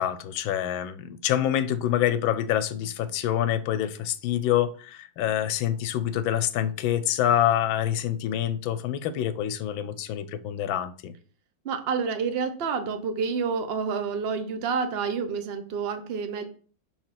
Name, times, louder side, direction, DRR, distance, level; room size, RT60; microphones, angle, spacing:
voice 1, 0.0-11.1, left 11 dB, 85° left, 13 dB, 1.4 m, -26 dB
voice 2, 11.6-16.4, right 5 dB, 85° right, 8 dB, 0.5 m, -28 dB
5.3 x 4.4 x 5.7 m, 0.42 s
omnidirectional pair, 2.1 m